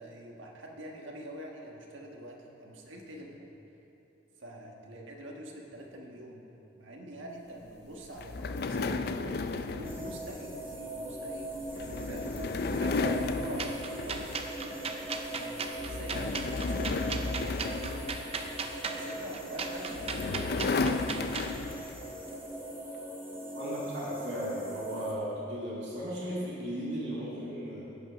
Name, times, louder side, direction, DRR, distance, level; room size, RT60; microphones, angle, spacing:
voice 1, 0.0-3.4 4.4-6.4 6.8-9.2 9.6-12.4 12.7-18.3 18.9-21.3, right 1 dB, 85° right, 0 dB, 1.4 m, -45 dB
sound 1, 8.2-14.7 15.1-15.4 15.8-18.8 19.6-22.0, left 3 dB, 55° left, 0.4 m, -34 dB
sound 2, 9.8-25.1, right 1 dB, 10° right, 1.2 m, -41 dB
sound 3, 13.6-21.5, right 5 dB, 30° right, 0.5 m, -37 dB
voice 2, 23.5-27.8, equal, 65° right, -7 dB, 1.9 m, -36 dB
16.0 x 5.5 x 5.1 m, 2.9 s
head